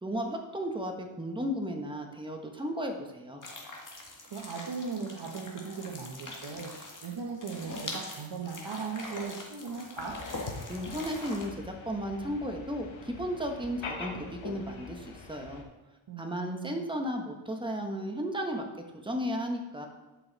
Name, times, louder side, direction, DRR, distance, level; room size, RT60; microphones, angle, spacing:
voice 1, 0.0-3.4 10.7-15.7 16.2-18.7 19.0-19.9, equal, 10° right, 3 dB, 1.3 m, -34 dB
sound 1, 3.4-11.5, left 2 dB, 40° left, 1.9 m, -43 dB
voice 2, 4.3-6.7 7.0-10.2 16.1-16.8, right 5 dB, 60° right, 0 dB, 1.1 m, -38 dB
sound 2, 10.0-15.6, left 4 dB, 65° left, 1.3 m, -44 dB
11.5 x 5.8 x 4.1 m, 1.1 s
wide cardioid pair, 105°, 49 cm